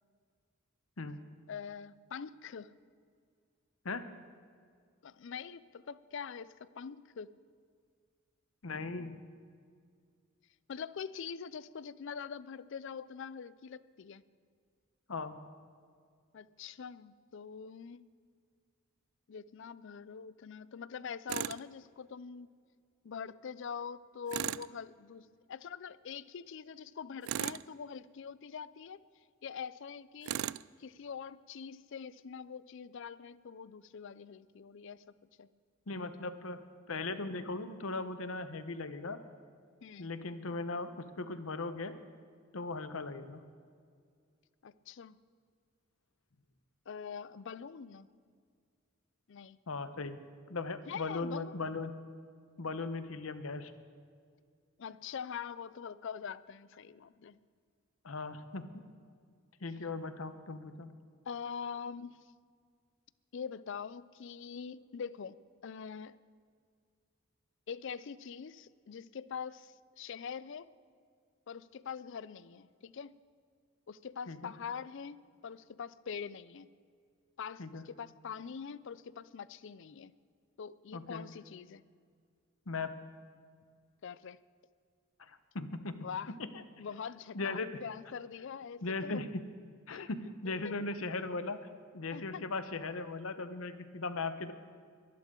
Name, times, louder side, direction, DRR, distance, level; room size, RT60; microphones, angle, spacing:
voice 1, 1.5-2.7 5.0-7.3 10.7-14.2 16.3-18.0 19.3-22.5 23.0-29.0 29.4-30.3 30.8-35.5 39.8-40.1 44.6-45.2 46.9-48.1 49.3-49.6 50.9-51.6 54.8-57.4 61.3-62.2 63.3-65.4 65.6-66.2 67.7-70.7 71.5-73.2 73.9-76.7 77.4-80.1 80.6-81.8 84.0-84.4 86.0-86.4 86.8-89.2 89.9-90.1 90.4-90.7 92.1-92.4, left 6 dB, 65° left, 17 dB, 0.4 m, -44 dB
voice 2, 8.6-9.2 15.1-15.4 35.9-39.2 40.0-41.9 42.5-43.4 49.7-50.2 50.5-51.9 52.6-53.7 58.0-58.9 59.6-60.9 74.3-74.5 77.6-77.8 80.9-81.2 82.7-82.9 85.2-86.1 87.3-87.8 88.8-89.4 89.9-91.6 91.9-94.5, left 3 dB, 80° left, 10 dB, 0.9 m, -38 dB
Tools, 21.3-21.6 24.3-24.7 27.2-27.7 30.2-30.7, right 11 dB, 85° right, 0.3 m, -36 dB
22.5 x 11.5 x 3.8 m, 2.1 s
head